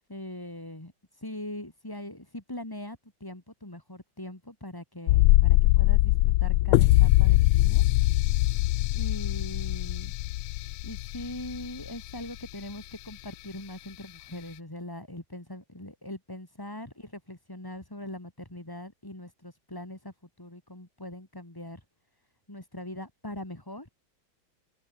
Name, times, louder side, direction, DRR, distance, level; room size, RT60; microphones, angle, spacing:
voice 1, 0.1-0.9 1.2-7.9 8.9-10.2 10.8-21.8 22.5-23.9, left 1 dB, 10° left, 2.6 m, -41 dB
sound 1, 5.1-11.9 12.2-12.3, left 18 dB, 85° left, 1.4 m, -22 dB
omnidirectional pair, 2.2 m